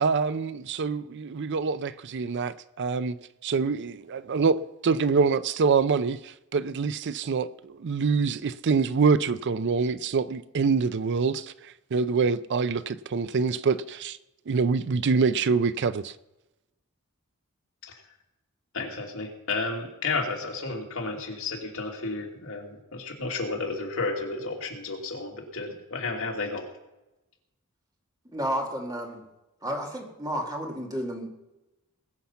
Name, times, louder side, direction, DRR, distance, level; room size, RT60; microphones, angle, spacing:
voice 1, 0.0-3.2 3.4-14.2 14.5-16.2, right 5 dB, 55° right, 0.5 m, -25 dB
voice 2, 18.7-26.6, left 3 dB, 65° left, 2.8 m, -32 dB
voice 3, 28.2-29.3 29.6-31.3, equal, 15° right, 2.2 m, -31 dB
20.5 x 7.1 x 5.8 m
head